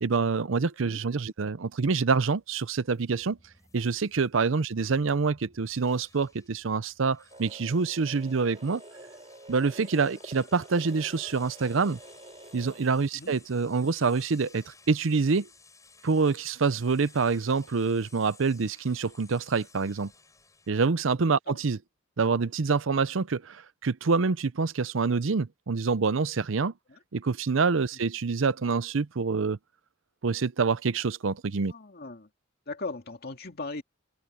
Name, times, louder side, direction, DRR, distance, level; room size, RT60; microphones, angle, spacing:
voice 1, 0.0-3.4 3.7-8.8 9.5-12.0 12.5-15.5 16.0-20.1 20.7-21.8 22.2-26.7 27.1-29.6 30.2-31.7, right 4 dB, 70° right, 0.6 m, -26 dB
sound 1, 2.3-20.7, left 4 dB, 15° left, 6.8 m, -57 dB
sound 2, 7.3-12.8, right 2 dB, 30° right, 5.5 m, -48 dB
voice 2, 31.6-32.3 32.7-33.8, left 3 dB, 50° left, 2.4 m, -38 dB
head